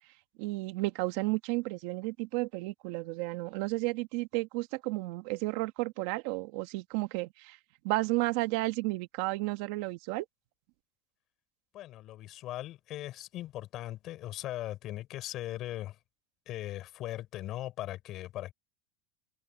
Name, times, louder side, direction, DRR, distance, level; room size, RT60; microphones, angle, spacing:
voice 1, 0.4-7.6 7.8-10.2, right 21 dB, 60° right, 1.5 m, -32 dB
voice 2, 11.7-16.0 16.5-18.5, left 14 dB, 40° left, 4.7 m, -39 dB
supercardioid pair, 155°, 0 cm